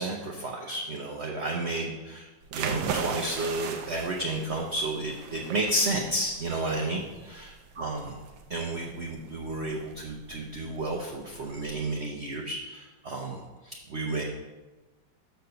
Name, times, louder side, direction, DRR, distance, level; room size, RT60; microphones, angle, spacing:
voice 1, 0.0-2.3 2.5-8.2 8.5-14.2, right 2 dB, 55° right, -1 dB, 0.7 m, -32 dB
sound 1, 2.4-11.7, right 6 dB, 85° right, 1.5 m, -38 dB
6.3 x 4.5 x 6.7 m, 1.2 s
omnidirectional pair, 2.0 m